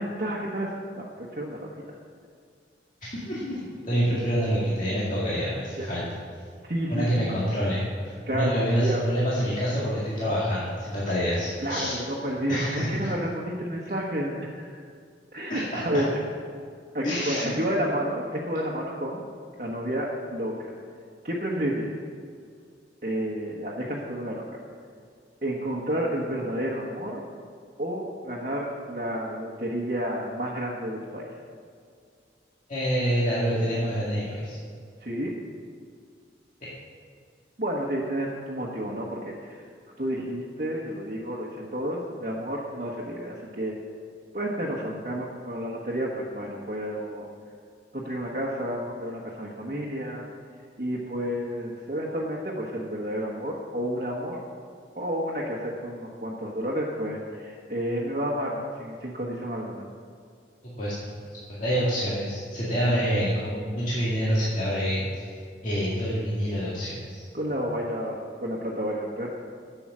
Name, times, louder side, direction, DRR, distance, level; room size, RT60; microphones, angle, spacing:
voice 1, 0.0-2.0 5.8-5.9 6.6-7.1 8.3-9.1 11.6-14.7 15.3-16.2 16.9-19.2 19.6-20.7 21.2-21.9 23.0-24.5 25.4-27.2 27.8-31.3 35.0-35.3 37.6-39.6 40.0-43.8 44.3-47.3 47.9-50.3 50.8-54.4 54.9-59.9 67.3-69.3, equal, 45° right, -4 dB, 1.3 m, -30 dB
voice 2, 3.1-3.6 3.8-6.0 6.9-12.0 12.5-13.1 15.5-15.8 17.0-17.5 32.7-34.6 60.8-60.9 61.5-65.3 65.6-67.2, equal, 45° left, -8 dB, 2.1 m, -27 dB
12.0 x 8.0 x 6.1 m, 2.3 s
head